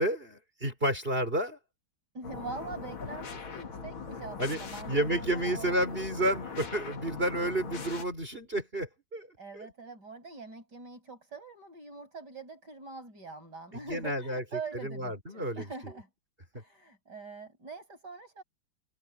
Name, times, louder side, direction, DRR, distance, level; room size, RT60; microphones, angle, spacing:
voice 1, 0.0-1.6 4.4-4.6 4.9-9.3 9.5-9.7 13.9-14.4 14.8-15.7, right 1 dB, 25° right, 5.8 m, -30 dB
voice 2, 2.1-6.5 9.4-16.1 16.5-18.4, right 4 dB, 55° right, 7.5 m, -44 dB
sound 1, 2.2-8.0, left 5 dB, 85° left, 3.2 m, -41 dB
open air
omnidirectional pair, 2.1 m